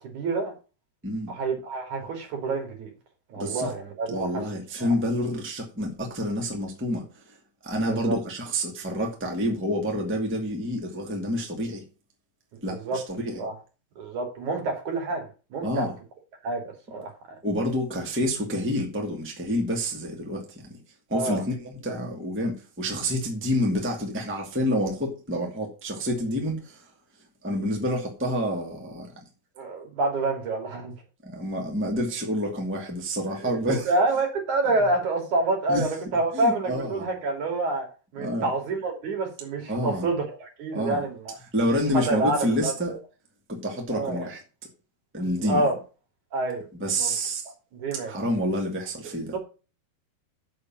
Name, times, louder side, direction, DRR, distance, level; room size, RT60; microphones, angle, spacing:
voice 1, 0.0-0.5 1.3-2.9 3.3-4.4 4.8-4.9 7.9-8.2 12.7-13.0 13.4-13.5 14.0-15.9 16.4-17.4 21.1-21.4 29.6-30.9 33.4-37.9 38.1-41.4 41.9-42.7 43.9-44.3 45.2-45.8 46.3-46.7 47.0-47.2 47.8-48.1 49.3-49.4, right 2 dB, 60° right, 3.9 m, -28 dB
voice 2, 3.3-3.7 4.1-7.3 7.6-11.8 12.6-13.4 15.6-15.9 17.4-20.8 21.1-26.8 27.4-29.2 31.2-33.9 35.7-35.9 36.3-37.1 38.2-38.5 39.7-40.1 40.7-41.0 41.5-42.9 43.5-44.4 45.1-45.6 46.7-47.5 48.1-49.3, equal, 5° right, 1.6 m, -28 dB
7.0 x 6.6 x 7.4 m
omnidirectional pair, 4.0 m